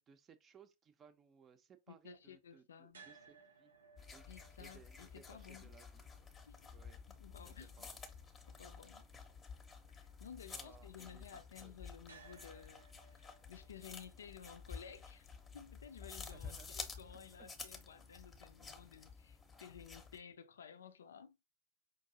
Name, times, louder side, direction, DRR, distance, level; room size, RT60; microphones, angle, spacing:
voice 1, 0.0-3.7 4.1-4.3 4.6-6.0 6.7-7.0 7.4-7.9 10.5-11.8 16.3-17.5 19.8-19.9, right 6 dB, 25° right, 0.5 m, -63 dB
voice 2, 1.9-3.0 4.3-5.7 6.5-6.6 7.1-7.9 8.5-9.1 9.9-15.3 15.5-21.4, left 8 dB, 65° left, 0.4 m, -55 dB
sound 1, 2.9-19.0, right 4 dB, 70° right, 0.6 m, -67 dB
sound 2, 4.0-20.2, left 5 dB, 20° left, 0.7 m, -52 dB
5.2 x 2.6 x 2.7 m
figure-of-eight pair, 90°, 0 cm